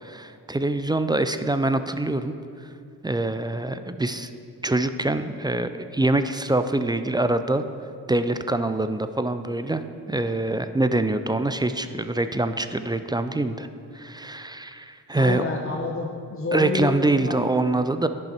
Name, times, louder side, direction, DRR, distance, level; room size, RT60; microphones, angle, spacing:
voice 1, 0.0-2.3 3.0-4.3 4.6-7.6 8.1-13.7 13.9-15.4 16.5-18.1, right 2 dB, 10° right, 10 dB, 0.3 m, -24 dB
voice 2, 15.2-17.4, left 3 dB, 30° left, 0 dB, 0.9 m, -28 dB
10.5 x 5.5 x 4.4 m, 2.4 s
supercardioid pair, 40°, 45 cm